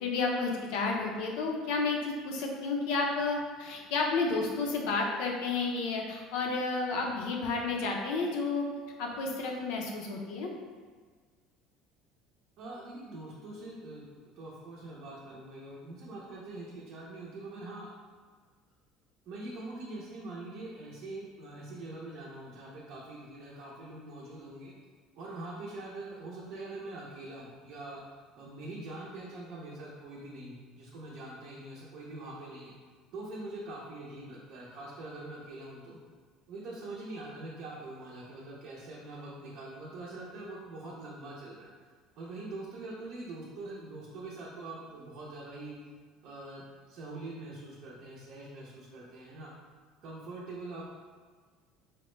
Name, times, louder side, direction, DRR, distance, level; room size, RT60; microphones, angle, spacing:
voice 1, 0.0-8.7 9.0-10.5, left 3 dB, 75° left, 1 dB, 0.6 m, -31 dB
voice 2, 12.6-17.9 19.3-24.7 25.2-28.0 28.4-32.7 33.1-36.0 36.5-41.7 42.2-45.8 46.2-49.5 50.0-50.9, right 2 dB, 55° right, -6 dB, 0.6 m, -43 dB
4.3 x 2.1 x 3.1 m, 1.6 s
cardioid pair, 155°, 0 cm